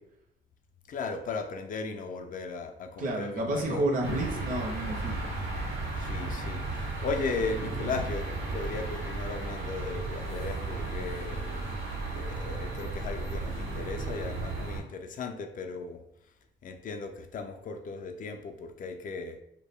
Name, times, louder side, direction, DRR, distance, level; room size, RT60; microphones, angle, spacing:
voice 1, 0.9-3.9 6.0-11.4 12.1-16.0 16.6-19.4, left 4 dB, 45° left, 0.4 m, -36 dB
voice 2, 3.0-5.3, right 1 dB, 45° right, 0.6 m, -30 dB
sound 1, 4.0-14.8, right 3 dB, 85° right, 0.7 m, -34 dB
2.2 x 2.1 x 3.3 m
cardioid pair, 90°, 20 cm